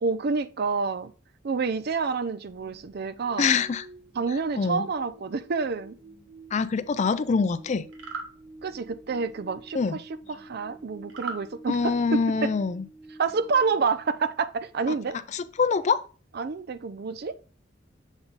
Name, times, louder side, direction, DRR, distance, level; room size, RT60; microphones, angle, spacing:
voice 1, 0.0-1.1 1.4-3.5 4.2-6.0 8.6-9.8 10.3-12.5 13.2-15.2 16.4-17.4, right 4 dB, 50° right, 0.5 m, -28 dB
sound 1, 2.5-14.6, right 2 dB, ahead, 1.8 m, -50 dB
voice 2, 3.4-3.9 4.6-4.9 6.5-7.9 9.7-10.0 11.7-12.8 14.9-15.0 15.3-16.0, left 5 dB, 35° left, 0.4 m, -25 dB
sound 2, 7.9-8.3 11.1-11.4, right 4 dB, 70° right, 1.3 m, -35 dB
7.1 x 3.8 x 4.0 m
head